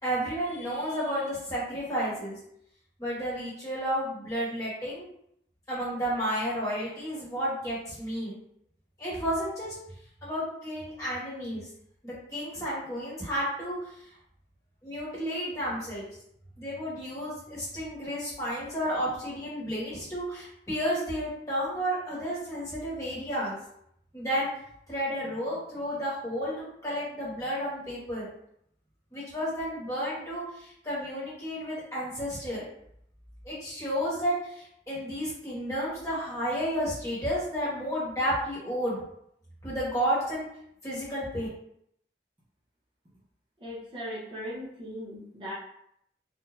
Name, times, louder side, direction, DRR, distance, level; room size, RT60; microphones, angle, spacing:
voice 1, 0.0-2.4 3.0-5.1 5.7-8.4 9.0-9.7 10.2-11.7 12.0-13.8 14.8-16.0 16.6-23.6 24.1-24.5 24.9-26.5 26.8-28.3 29.1-32.7 33.4-39.0 39.6-40.5 40.8-41.5, equal, 20° left, -8 dB, 1.1 m, -32 dB
voice 2, 43.6-45.5, equal, 30° right, -8 dB, 0.6 m, -38 dB
2.5 x 2.1 x 3.1 m, 0.73 s
head